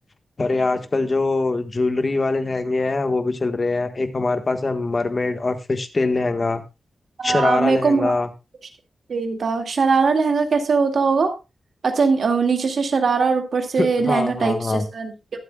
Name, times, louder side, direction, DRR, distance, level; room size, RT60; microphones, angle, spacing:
voice 1, 0.4-6.6 7.2-8.3 13.8-14.8, left 3 dB, 30° left, 8 dB, 1.4 m, -23 dB
voice 2, 7.2-8.2 9.1-11.3 11.8-15.1, right 4 dB, 60° right, 5 dB, 2.1 m, -20 dB
22.0 x 8.0 x 2.3 m, 0.26 s
wide cardioid pair, 160°, 0 cm